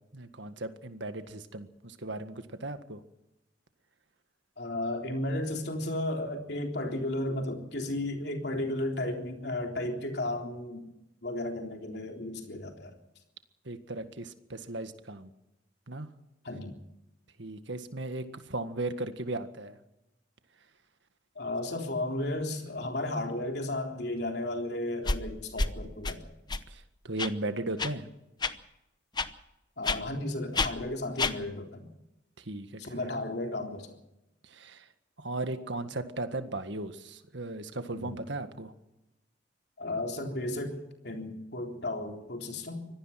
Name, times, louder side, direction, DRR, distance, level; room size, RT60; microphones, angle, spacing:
voice 1, 0.1-3.0 13.6-15.3 15.9-16.1 17.4-19.7 26.7-28.1 32.4-33.0 34.4-34.9 35.2-38.7, right 2 dB, 70° right, 9 dB, 1.8 m, -37 dB
voice 2, 4.6-10.8 11.2-13.0 16.4-16.8 21.4-26.3 29.8-31.9 32.8-34.0 37.9-38.2 39.8-42.9, left 1 dB, 60° left, 3 dB, 3.7 m, -34 dB
sound 1, 25.1-25.2 25.6-25.7 26.0-26.1 26.5-26.6 27.2-27.3 27.8-27.9 28.4-28.5 29.2-29.3 29.8-30.0 30.6-30.7 31.2-31.3, left 3 dB, 20° left, 0.8 m, -28 dB
25.0 x 18.0 x 5.9 m, 0.93 s
head